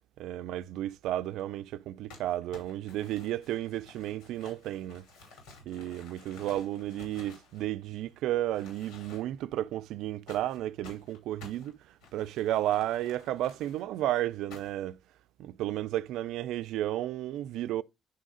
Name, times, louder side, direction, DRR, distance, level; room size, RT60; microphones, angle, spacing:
voice 1, 0.2-5.1 5.7-11.8 12.1-15.0 15.4-17.8, right 13 dB, 75° right, 0.5 m, -33 dB
Crumpling crinkling, 2.1-8.1 8.5-9.5 10.3-13.8 14.5-14.9, left 3 dB, 80° left, 5.4 m, -53 dB
10.0 x 3.8 x 4.8 m
supercardioid pair, 60°, 0 cm